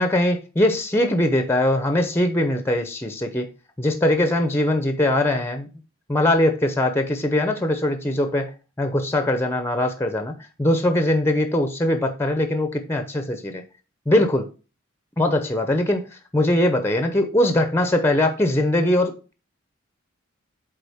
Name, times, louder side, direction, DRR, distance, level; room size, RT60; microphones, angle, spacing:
voice 1, 0.0-3.5 3.8-5.7 6.1-13.6 14.1-14.5 15.2-16.1 16.3-19.3, left 1 dB, 10° left, 0.7 m, -21 dB
8.2 x 3.9 x 3.5 m
head